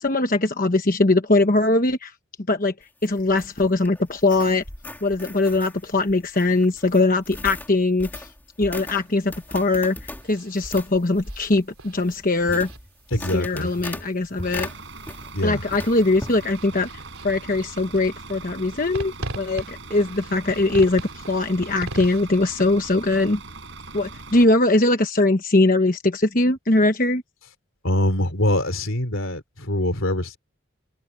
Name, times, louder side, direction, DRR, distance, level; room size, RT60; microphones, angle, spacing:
voice 1, 0.0-2.1 2.5-2.7 3.0-4.6 5.0-8.3 8.6-10.0 10.3-12.7 13.3-14.7 15.4-16.9 17.2-23.4 23.9-27.2, left 2 dB, 40° left, 1.1 m, -21 dB
sound 1, 2.8-15.4 15.7-16.4, left 1 dB, 10° left, 2.3 m, -38 dB
sound 2, 8.8-22.2, right 2 dB, 85° right, 3.1 m, -41 dB
voice 2, 13.1-13.7 15.3-15.6 27.8-30.4, left 1 dB, 65° left, 3.2 m, -24 dB
Bus / Idling, 14.4-24.4, right 3 dB, 55° right, 6.5 m, -41 dB
head